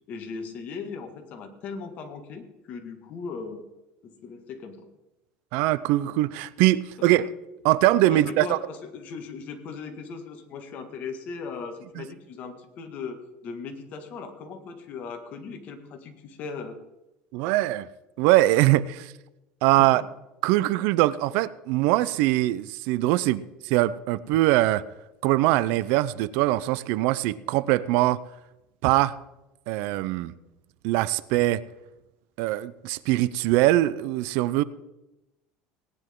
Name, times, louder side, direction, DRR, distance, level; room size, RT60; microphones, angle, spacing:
voice 1, 0.1-3.6 4.0-4.9 7.0-7.1 8.1-16.8 19.8-20.1, left 5 dB, 50° left, 5 dB, 2.0 m, -38 dB
voice 2, 5.5-7.3 7.6-8.6 12.0-12.1 17.3-17.9 18.2-19.1 19.6-20.0 20.4-24.8 25.2-28.2 28.8-29.1 29.7-30.3 30.8-31.6 32.4-34.6, right 16 dB, 70° right, 18 dB, 0.5 m, -22 dB
18.5 x 10.0 x 3.8 m, 0.96 s
supercardioid pair, 130°, 3 cm